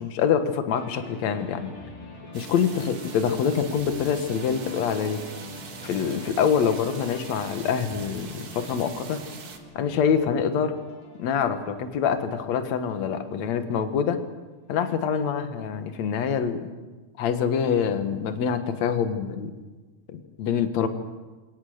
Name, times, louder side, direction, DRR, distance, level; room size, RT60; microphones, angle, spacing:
voice 1, 0.0-1.7 2.3-5.2 5.8-9.2 9.8-10.7 11.2-14.2 14.7-16.7 17.2-19.5 20.1-20.9, left 7 dB, 55° left, 9 dB, 2.5 m, -25 dB
sound 1, 0.7-14.4, left 1 dB, 80° left, 6.3 m, -44 dB
sound 2, 2.3-9.6, right 5 dB, 45° right, 2.3 m, -43 dB
29.0 x 18.0 x 6.6 m, 1.3 s
omnidirectional pair, 4.1 m